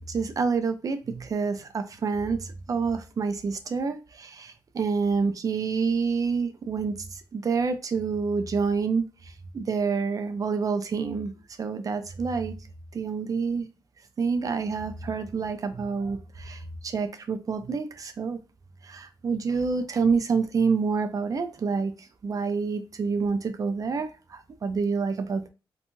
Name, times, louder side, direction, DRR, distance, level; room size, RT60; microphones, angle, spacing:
voice 1, 0.1-11.3 11.6-12.5 12.9-13.7 14.2-18.4 18.8-21.9 22.2-25.5, right 5 dB, 40° right, 9 dB, 0.4 m, -28 dB
2.9 x 2.2 x 2.6 m, 0.31 s
cardioid pair, 105°, 9 cm